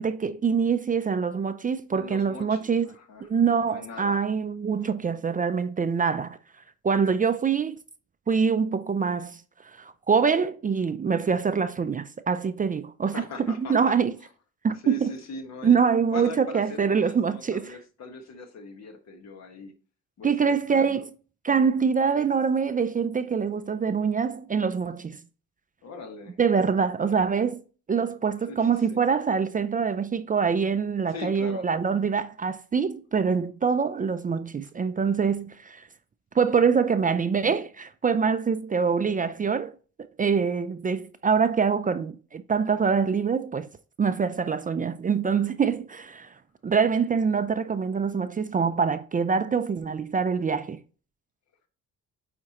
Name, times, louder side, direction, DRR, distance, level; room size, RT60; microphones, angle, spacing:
voice 1, 0.0-2.9 3.2-6.4 6.8-7.8 8.3-14.1 14.6-15.1 15.6-17.8 20.2-21.1 21.4-25.2 26.4-27.6 27.9-35.9 36.3-39.7 40.2-43.7 44.0-46.3 46.6-50.8, right 6 dB, 25° right, 0.5 m, -25 dB
voice 2, 1.9-3.3 3.7-4.2 13.0-13.9 14.8-15.8 16.1-19.7 20.2-21.0 25.8-26.4 27.0-27.2 28.5-29.0 31.1-31.6, left 4 dB, 60° left, 1.5 m, -41 dB
8.6 x 4.3 x 3.0 m
cardioid pair, 90°, 30 cm